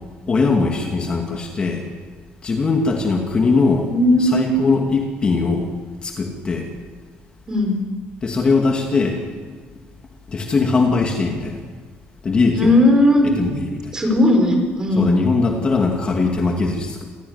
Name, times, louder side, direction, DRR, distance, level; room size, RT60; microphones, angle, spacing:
voice 1, 0.3-1.8 2.4-3.9 4.2-5.7 6.0-6.7 8.2-9.2 10.3-11.6 12.2-12.8 13.2-13.9 15.0-17.0, left 4 dB, 25° left, 2 dB, 2.4 m, -20 dB
voice 2, 3.9-4.5 7.5-7.8 12.5-13.3 13.9-15.1, left 1 dB, 15° right, 4 dB, 5.0 m, -16 dB
27.5 x 17.0 x 9.6 m, 1.5 s
cardioid pair, 175°, 4 cm